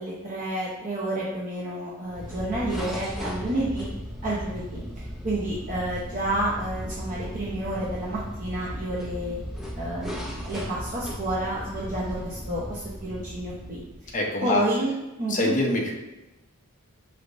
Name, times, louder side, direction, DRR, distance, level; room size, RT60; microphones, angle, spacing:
voice 1, 0.0-3.9 4.2-4.8 5.2-9.4 9.8-13.8 14.4-14.9 15.2-15.5, right 1 dB, 35° right, -7 dB, 0.8 m, -30 dB
sound 1, 2.1-14.2, equal, ahead, 0.5 m, -36 dB
voice 2, 14.1-14.6 15.3-15.9, left 2 dB, 35° left, -1 dB, 0.7 m, -25 dB
5.5 x 3.2 x 2.6 m, 0.98 s
head